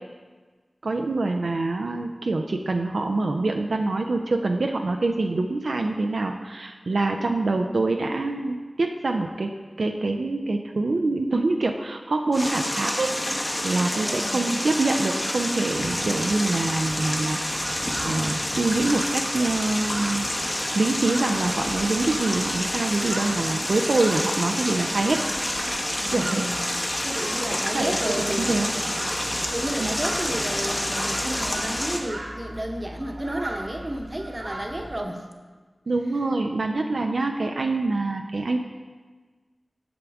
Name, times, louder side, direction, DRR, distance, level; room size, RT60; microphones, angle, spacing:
voice 1, 0.8-9.5 9.8-13.1 13.6-17.8 18.0-20.2 20.7-25.2 26.1-26.4 27.7-28.7 29.8-30.0 35.9-38.6, right 2 dB, 85° right, 3 dB, 0.4 m, -25 dB
sound 1, 12.3-32.0, left 1 dB, 30° left, 0.9 m, -28 dB
voice 2, 13.8-14.5 25.9-26.6 27.0-28.6 28.8-35.2, right 1 dB, 35° right, 2 dB, 0.9 m, -32 dB
sound 2, 17.0-35.0, right 1 dB, 70° right, 1.2 m, -39 dB
8.5 x 6.0 x 3.5 m, 1.4 s
wide cardioid pair, 45°, 0 cm